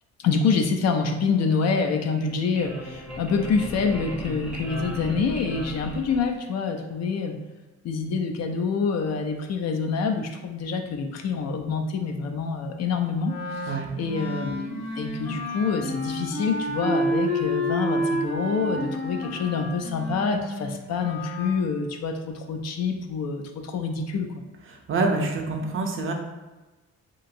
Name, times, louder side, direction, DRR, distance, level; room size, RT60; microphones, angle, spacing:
voice 1, 0.2-7.4 7.8-24.3, left 5 dB, 60° left, 4 dB, 0.4 m, -26 dB
sound 1, 2.0-6.7, left 1 dB, 5° right, 0.6 m, -37 dB
Wind instrument woodwind instrument, 13.2-21.5, equal, 85° left, 0.9 m, -30 dB
voice 2, 24.9-26.1, right 3 dB, 45° right, 3 dB, 0.5 m, -25 dB
3.0 x 2.6 x 2.5 m, 1.2 s
cardioid pair, 90°, 30 cm